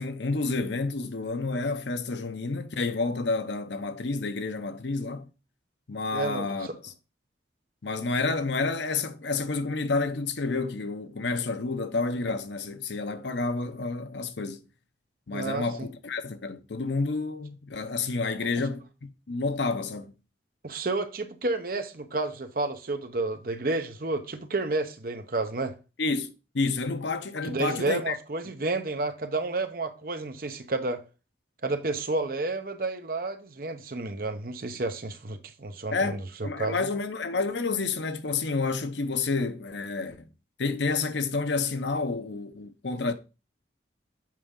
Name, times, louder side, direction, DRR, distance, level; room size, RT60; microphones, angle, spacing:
voice 1, 0.0-5.3 5.9-6.9 7.8-14.6 15.3-20.2 26.0-28.2 35.9-40.3 40.6-43.1, left 3 dB, 75° left, 0.7 m, -30 dB
voice 2, 6.1-6.7 15.3-15.9 18.6-18.7 20.6-25.7 27.4-31.0 31.6-36.9, right 2 dB, 50° right, 0.8 m, -31 dB
7.5 x 4.8 x 3.7 m
head